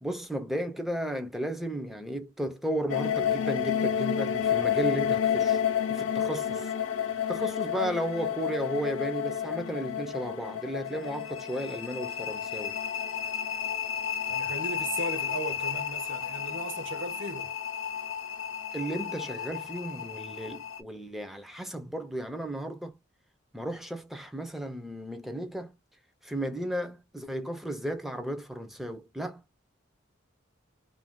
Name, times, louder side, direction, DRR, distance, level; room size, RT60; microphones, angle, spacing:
voice 1, 0.0-5.6 5.9-6.7 7.3-12.8 18.7-22.9 23.5-25.8 26.2-29.4, right 1 dB, ahead, 0.4 m, -34 dB
sound 1, 2.9-20.8, left 8 dB, 80° left, 0.6 m, -31 dB
voice 2, 14.3-17.5, right 2 dB, 65° right, 0.7 m, -37 dB
2.5 x 2.1 x 3.5 m
head